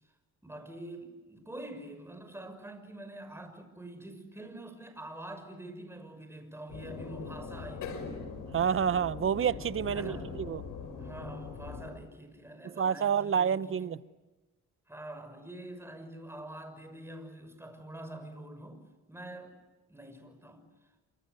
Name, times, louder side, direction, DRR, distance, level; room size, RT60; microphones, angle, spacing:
voice 1, 0.4-8.1 9.9-10.4 11.0-14.0 14.9-18.8 19.1-19.6 19.9-20.7, right 1 dB, 10° right, 6.2 m, -45 dB
sound 1, 6.7-11.9, left 5 dB, 90° left, 5.5 m, -41 dB
voice 2, 8.5-10.6 12.6-14.0, right 7 dB, 45° right, 0.8 m, -29 dB
28.0 x 25.5 x 8.2 m
cardioid pair, 90°, 30 cm